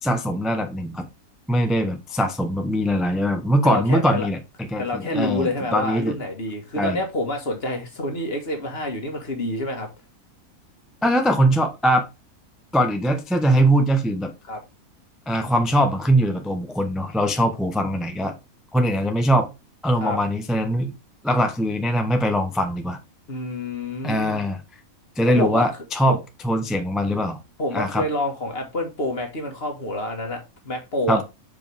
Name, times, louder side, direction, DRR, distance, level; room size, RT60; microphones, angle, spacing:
voice 1, 0.0-1.1 1.5-6.2 6.8-7.0 11.0-12.1 12.7-14.3 15.3-18.4 18.7-19.5 19.8-20.9 21.2-23.0 24.0-24.6 25.2-26.2 26.4-27.4 27.7-28.0 31.1-31.2, equal, ahead, 0.6 m, -21 dB
voice 2, 3.6-4.3 4.8-9.9 14.5-14.6 20.0-20.2 23.3-24.5 25.3-26.2 27.6-31.2, left 1 dB, 45° left, 1.9 m, -28 dB
7.3 x 5.3 x 3.4 m
omnidirectional pair, 1.5 m